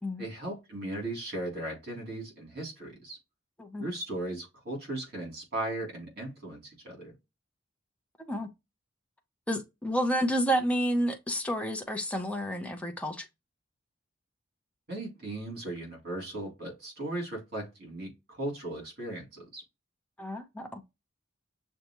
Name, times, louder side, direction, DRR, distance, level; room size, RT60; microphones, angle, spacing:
voice 1, 0.2-3.2 3.8-7.1 14.9-19.6, right 1 dB, 50° right, 3.0 m, -37 dB
voice 2, 9.5-13.3 20.2-20.8, equal, 5° left, 0.7 m, -30 dB
6.6 x 2.3 x 3.0 m
head